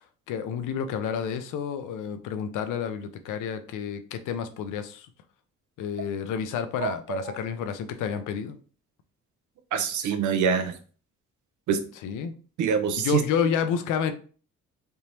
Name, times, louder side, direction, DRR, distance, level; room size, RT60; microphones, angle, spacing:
voice 1, 0.0-5.1 5.8-8.6 12.0-12.3 13.0-14.1, left 7 dB, 85° left, 9 dB, 0.6 m, -30 dB
voice 2, 6.8-7.4 9.7-10.8 11.7-11.8 12.6-13.2, right 7 dB, 75° right, 8 dB, 0.6 m, -25 dB
3.4 x 2.7 x 2.9 m, 0.39 s
cardioid pair, 90°, 30 cm